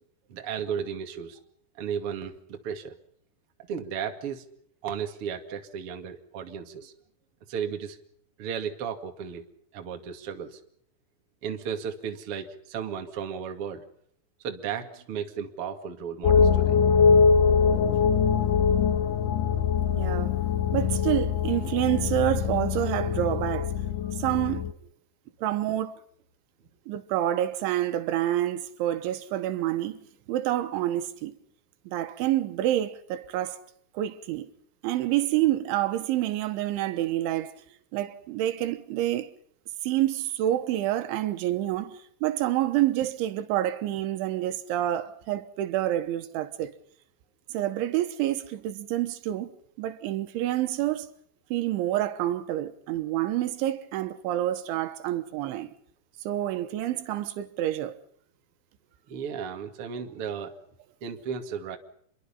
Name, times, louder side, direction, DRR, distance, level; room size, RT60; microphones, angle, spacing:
voice 1, 0.3-1.4 1.8-2.9 3.7-4.4 4.8-6.9 7.5-8.0 8.4-9.5 9.7-10.6 11.4-13.8 14.4-16.8 59.1-60.5 61.0-61.8, right 7 dB, 40° right, 2.2 m, -34 dB
sound 1, 16.2-24.7, left 6 dB, 90° left, 1.8 m, -23 dB
voice 2, 20.0-20.3 20.7-23.7 24.2-24.6 25.4-26.0 26.9-30.0 30.3-31.3 31.9-33.6 34.0-34.5 34.8-37.6 37.9-39.3 39.8-46.7 47.5-49.5 49.8-51.1 51.5-55.7 56.3-58.0, right 13 dB, 80° right, 3.5 m, -28 dB
27.5 x 23.0 x 5.6 m
omnidirectional pair, 5.4 m